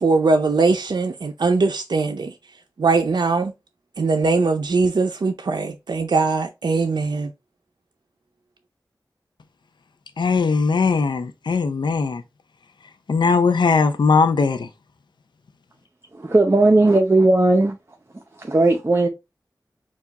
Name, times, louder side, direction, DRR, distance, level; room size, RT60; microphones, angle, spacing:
voice 1, 0.0-2.3 2.8-3.5 4.0-7.3, right 4 dB, 70° right, 0.5 m, -21 dB
voice 2, 10.2-12.2 13.1-14.7, left 4 dB, 80° left, 0.5 m, -19 dB
voice 3, 16.1-17.8 18.4-19.1, right 2 dB, 35° right, 0.7 m, -16 dB
4.6 x 2.4 x 3.9 m
cardioid pair, 40°, 8 cm